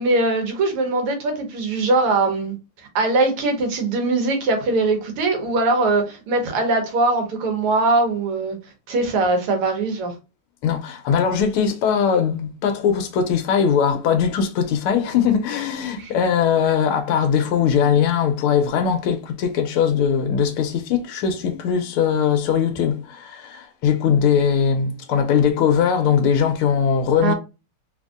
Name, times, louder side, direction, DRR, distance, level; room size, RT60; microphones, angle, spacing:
voice 1, 0.0-2.5 3.0-8.6 8.9-10.1 16.0-16.1 27.2-27.3, right 2 dB, 90° right, 1.9 m, -21 dB
voice 2, 10.6-27.3, left 7 dB, 80° left, 1.5 m, -20 dB
4.0 x 2.5 x 2.4 m
omnidirectional pair, 2.4 m